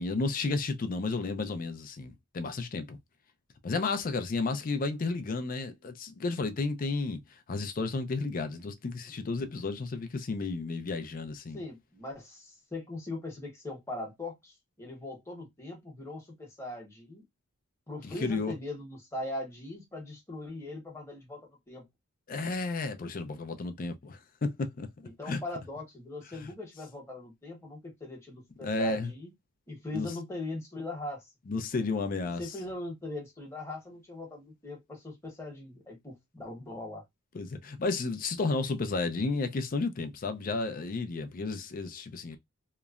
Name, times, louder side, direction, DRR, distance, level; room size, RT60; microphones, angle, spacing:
voice 1, 0.0-3.0 3.6-11.6 18.1-18.5 22.3-25.4 28.6-29.1 29.9-30.1 31.5-32.4 37.3-42.4, left 3 dB, 40° left, 0.4 m, -32 dB
voice 2, 11.5-17.2 17.9-21.8 25.0-29.3 29.7-31.3 32.4-37.0, left 2 dB, 15° left, 1.0 m, -40 dB
2.9 x 2.1 x 2.4 m
head